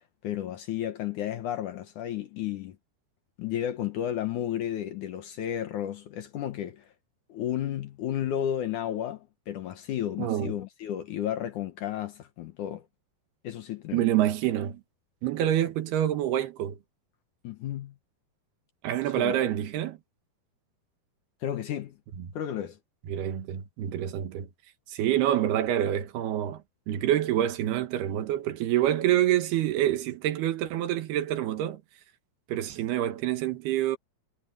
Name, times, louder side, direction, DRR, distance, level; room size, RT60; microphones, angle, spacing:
voice 1, 0.2-2.8 3.4-6.9 7.3-12.8 13.4-14.1 17.4-17.9 19.2-19.3 21.4-22.0 22.3-22.8, left 11 dB, 65° left, 2.2 m, -32 dB
voice 2, 10.2-10.5 13.9-14.8 15.2-16.8 18.8-20.0 22.2-22.3 23.1-24.5 24.9-31.8 32.5-34.0, right 12 dB, 80° right, 3.4 m, -27 dB
omnidirectional pair, 4.5 m